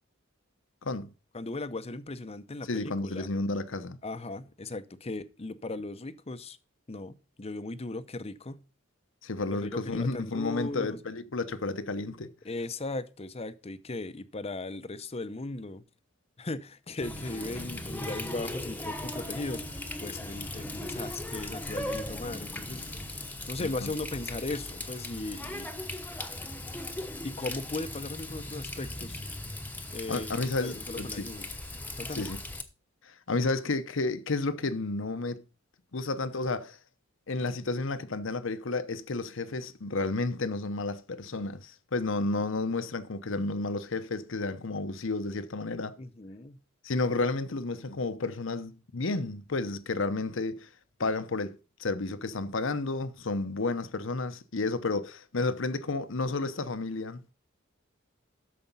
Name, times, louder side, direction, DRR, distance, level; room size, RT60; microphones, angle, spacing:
voice 1, 1.3-3.3 4.0-6.6 6.9-8.6 9.6-11.0 12.4-15.8 16.4-25.7 27.2-29.2 29.9-31.5 31.9-32.3 46.0-46.6, left 2 dB, 30° left, 0.7 m, -37 dB
voice 2, 2.7-4.0 9.2-12.3 23.6-23.9 30.1-31.3 32.2-32.4 33.0-35.4 35.9-36.8 37.3-46.0 46.8-50.7 51.0-57.3, left 3 dB, 65° left, 0.9 m, -31 dB
Water tap faucet, 17.0-32.6, left 1 dB, 10° left, 1.0 m, -38 dB
13.0 x 5.1 x 5.4 m
head